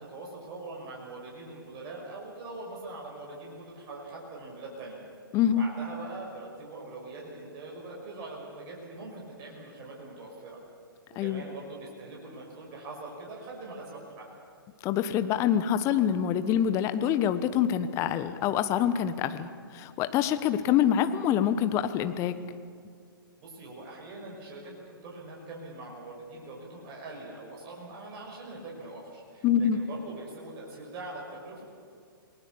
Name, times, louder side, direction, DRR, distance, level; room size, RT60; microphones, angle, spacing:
voice 1, 0.0-5.0 5.6-10.6 11.2-14.3 23.4-31.6, right 2 dB, 30° right, -2 dB, 6.0 m, -43 dB
voice 2, 14.8-22.4 29.4-29.8, left 9 dB, 25° left, 11 dB, 1.1 m, -26 dB
28.5 x 19.5 x 7.1 m, 2.2 s
figure-of-eight pair, 120°, 12 cm